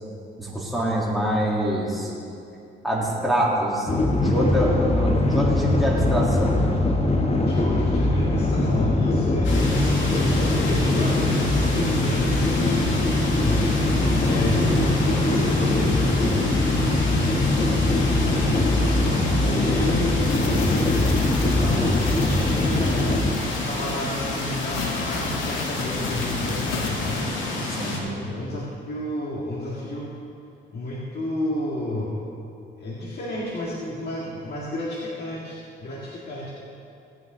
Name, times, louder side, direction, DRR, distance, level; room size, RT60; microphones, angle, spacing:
voice 1, 0.4-2.1 2.8-6.7 21.6-21.9 27.7-28.0, equal, ahead, -6 dB, 3.3 m, -25 dB
sound 1, 3.9-23.3, left 2 dB, 30° left, 1.2 m, -22 dB
voice 2, 7.4-13.0 13.4-13.7 14.2-16.4 17.9-21.1 21.7-23.2 23.7-27.3 27.8-30.1 30.7-32.2 32.8-36.5, left 1 dB, 55° left, -6 dB, 2.0 m, -31 dB
sound 2, 9.4-28.0, left 2 dB, 70° left, 2.6 m, -30 dB
sound 3, 20.2-27.2, left 5 dB, 90° left, 1.2 m, -34 dB
17.5 x 8.9 x 3.9 m, 2.6 s
cardioid pair, 90°, 20 cm